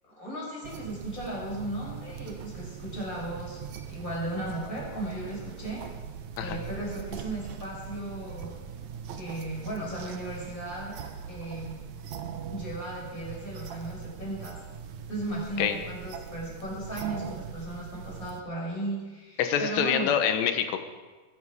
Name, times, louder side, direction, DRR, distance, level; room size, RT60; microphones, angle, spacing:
voice 1, 0.1-3.6 3.9-5.8 6.4-8.5 9.1-11.0 11.3-11.8 12.5-14.6 15.1-20.1, right 1 dB, 20° left, -4 dB, 6.5 m, -36 dB
sound 1, 0.6-18.4, right 7 dB, 80° right, 1.6 m, -41 dB
voice 2, 19.4-20.8, left 8 dB, 90° left, 7 dB, 3.2 m, -26 dB
21.5 x 12.5 x 4.9 m, 1.3 s
omnidirectional pair, 4.7 m